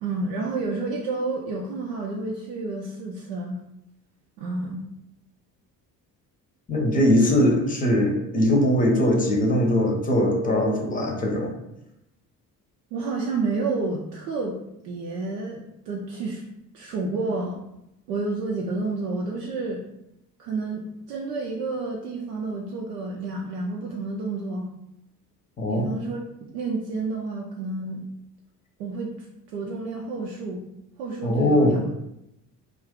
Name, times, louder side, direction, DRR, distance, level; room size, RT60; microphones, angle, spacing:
voice 1, 0.0-3.6 4.4-4.8 12.9-14.5 14.8-16.4 16.7-17.6 18.1-19.8 20.4-24.7 25.7-28.1 28.8-30.6 31.0-31.8, right 3 dB, 70° right, -1 dB, 0.5 m, -30 dB
voice 2, 6.7-11.5 25.6-25.9 31.2-31.8, left 1 dB, 15° left, 1 dB, 0.7 m, -21 dB
2.4 x 2.4 x 3.6 m, 0.85 s
figure-of-eight pair, 50°, 50 cm